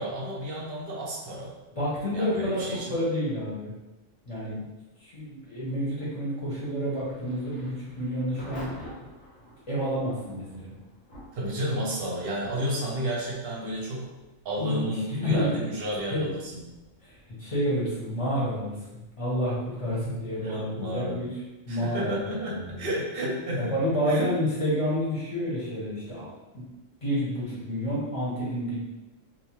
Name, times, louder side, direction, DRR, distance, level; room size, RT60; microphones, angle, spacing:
voice 1, 0.0-1.5 2.1-2.9 11.3-14.1 14.4-16.4 19.9-20.2 20.4-21.2 21.7-23.7 24.1-24.3, equal, 55° right, -4 dB, 0.8 m, -31 dB
voice 2, 1.7-3.7 4.2-4.6 5.0-8.7 9.7-10.7 14.6-15.5 16.1-16.3 17.0-21.4 21.7-22.2 22.5-22.9 23.6-26.6 27.0-28.8, equal, 30° left, -8 dB, 0.8 m, -29 dB
Thunder / Rain, 6.9-23.6, equal, 80° left, 1.3 m, -51 dB
2.7 x 2.1 x 3.0 m, 1.0 s
omnidirectional pair, 1.4 m